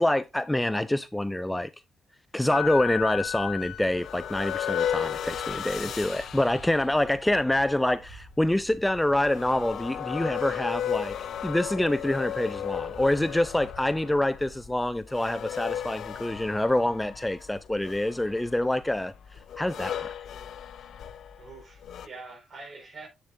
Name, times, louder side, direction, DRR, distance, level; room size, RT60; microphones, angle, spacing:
voice 1, 0.0-1.7 2.3-11.1 11.4-19.1 19.6-20.1, left 1 dB, 10° left, 0.4 m, -26 dB
sound 1, 2.5-22.1, left 10 dB, 65° left, 0.6 m, -35 dB
sound 2, 5.1-14.7, right 3 dB, 60° right, 2.6 m, -52 dB
voice 2, 5.7-6.4 6.9-7.1 21.4-23.1, right 3 dB, 40° right, 4.4 m, -45 dB
8.1 x 6.8 x 2.5 m
cardioid pair, 90°, 0 cm